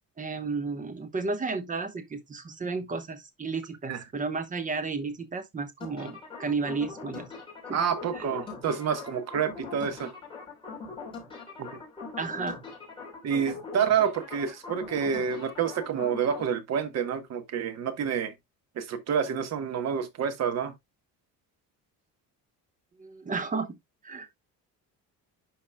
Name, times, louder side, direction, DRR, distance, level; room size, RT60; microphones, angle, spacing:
voice 1, 0.2-7.3 7.7-7.8 8.1-8.2 12.2-12.6 23.0-23.8 24.0-24.4, right 4 dB, 20° right, 1.0 m, -33 dB
sound 1, 5.8-16.5, left 4 dB, 15° left, 3.2 m, -42 dB
voice 2, 7.7-10.1 11.6-11.7 13.2-18.3 18.8-20.7, right 7 dB, 45° right, 1.0 m, -28 dB
11.0 x 4.1 x 2.2 m
cardioid pair, 160°, 36 cm